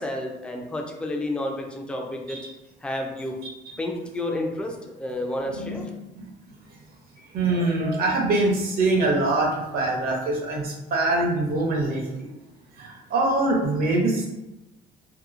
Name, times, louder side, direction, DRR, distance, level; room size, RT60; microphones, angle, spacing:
voice 1, 0.0-2.4 2.8-3.4 3.8-5.9, left 1 dB, 5° left, 1 dB, 0.4 m, -30 dB
voice 2, 5.5-5.9 6.1-6.3 7.3-12.3 12.8-14.3, right 2 dB, 60° right, 0 dB, 0.8 m, -24 dB
2.8 x 2.6 x 2.4 m, 0.97 s
cardioid pair, 110°, 17 cm